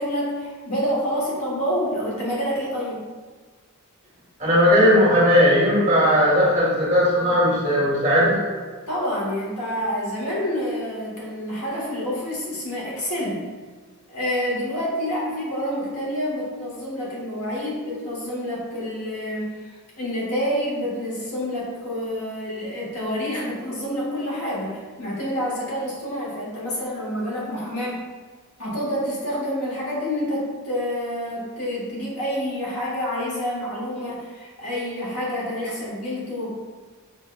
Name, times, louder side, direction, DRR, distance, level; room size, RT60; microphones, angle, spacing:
voice 1, 0.0-3.1 8.9-13.4 14.1-28.0 28.6-36.5, equal, 80° left, -6 dB, 1.2 m, -28 dB
voice 2, 4.4-8.4, equal, 30° right, -8 dB, 1.3 m, -17 dB
5.6 x 2.1 x 2.3 m, 1.4 s
head